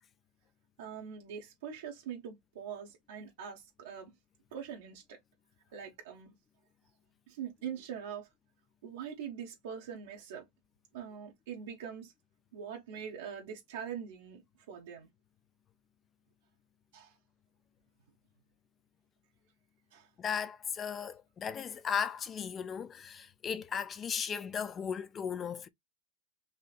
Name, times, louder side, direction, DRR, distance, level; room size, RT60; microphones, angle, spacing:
voice 1, 0.8-4.1 4.5-5.2 5.7-6.3 7.3-8.3 8.8-10.4 10.9-12.1 12.5-14.4 14.7-15.1 16.9-17.1 19.9-20.1, right 8 dB, 75° right, 1.1 m, -43 dB
voice 2, 20.2-25.7, left 7 dB, 25° left, 0.3 m, -36 dB
3.9 x 2.7 x 2.4 m
supercardioid pair, 140°, 0 cm